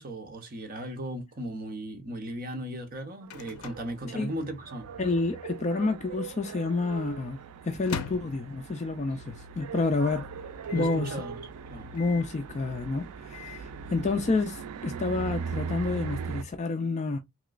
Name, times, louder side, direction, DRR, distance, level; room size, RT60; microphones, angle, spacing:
voice 1, 0.0-4.9 10.7-11.9, right 1 dB, 40° right, 0.8 m, -37 dB
Microwave oven, 2.7-4.9 5.1-5.2 5.4-6.0 6.5-9.2 9.6-9.7 9.9-10.0 10.6-11.1 11.9-12.4 13.0-13.7, left 6 dB, 85° left, 0.5 m, -43 dB
sound 1, 3.2-16.4, right 6 dB, 85° right, 0.3 m, -40 dB
voice 2, 5.0-7.4 7.6-10.3 10.7-11.2 11.9-17.2, left 3 dB, 30° left, 0.3 m, -29 dB
3.0 x 2.9 x 2.4 m
head